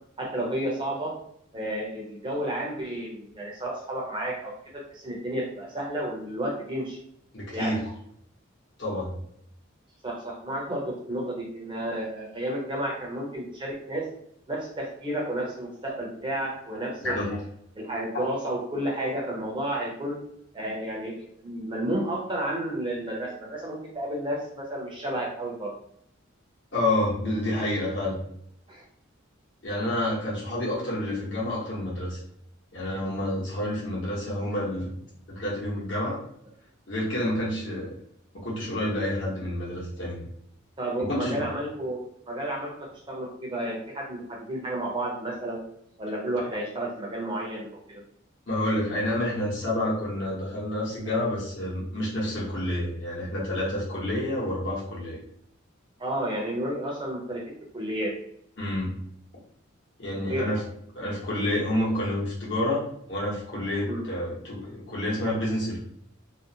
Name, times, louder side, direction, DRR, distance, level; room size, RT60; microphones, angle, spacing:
voice 1, 0.2-1.2 1.5-7.0 7.5-7.8 10.0-14.0 14.5-17.4 17.8-20.2 20.5-25.7 28.7-28.8 40.8-42.0 42.3-45.6 46.0-48.0 56.0-58.1 60.3-60.5 63.9-64.0, right 1 dB, 25° right, -2 dB, 0.6 m, -31 dB
voice 2, 7.3-7.9 8.8-9.1 17.0-17.4 18.1-18.3 26.7-28.2 29.6-32.2 32.7-34.9 35.3-36.2 36.9-37.9 38.3-40.2 41.0-41.5 48.5-55.2 58.6-59.0 60.0-60.6 60.9-65.8, left 1 dB, 60° left, -5 dB, 1.0 m, -29 dB
2.6 x 2.0 x 2.7 m, 0.70 s
head